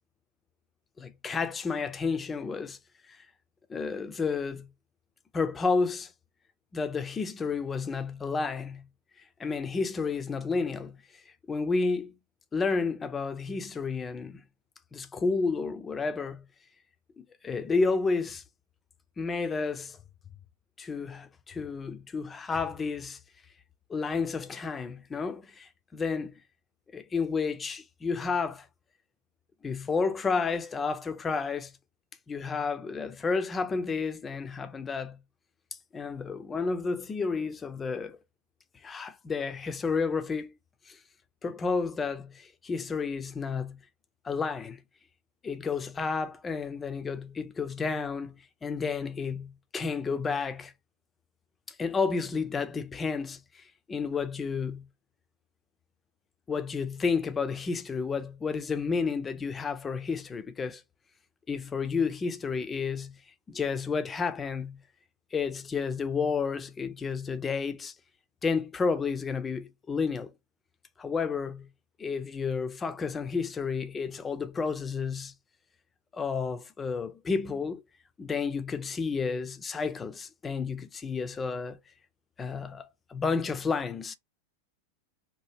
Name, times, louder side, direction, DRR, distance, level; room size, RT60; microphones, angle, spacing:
voice 1, 1.0-2.8 3.1-3.2 3.7-4.7 5.3-6.1 6.7-8.8 9.4-11.0 11.5-12.1 12.5-14.4 14.9-16.4 17.2-18.4 19.2-20.0 20.8-23.2 23.9-26.4 26.9-28.7 29.6-31.7 32.3-35.2 35.9-38.2 38.8-40.5 40.9-41.0 41.4-43.8 44.2-44.8 45.4-48.3 48.6-50.7 51.7-54.9 56.5-60.8 61.5-63.2 63.5-64.8 65.3-67.9 68.4-70.3 71.0-71.7 72.0-75.3 76.1-77.8 78.2-81.8 82.4-84.1, left 4 dB, 15° left, 0.4 m, -31 dB
2.9 x 2.1 x 3.3 m
figure-of-eight pair, 90°, 0 cm